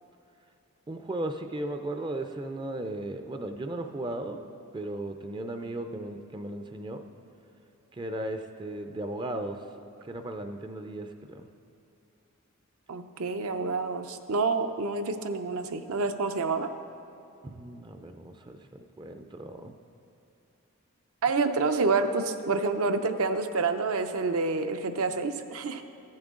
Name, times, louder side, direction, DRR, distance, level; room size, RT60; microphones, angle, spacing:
voice 1, 0.9-4.5 4.7-7.1 7.9-9.7 10.0-11.5 17.4-19.7, right 1 dB, 20° right, 6 dB, 0.4 m, -36 dB
voice 2, 12.9-16.7 21.2-25.8, right 4 dB, 75° right, 8 dB, 0.6 m, -28 dB
15.0 x 8.8 x 3.7 m, 2.7 s
head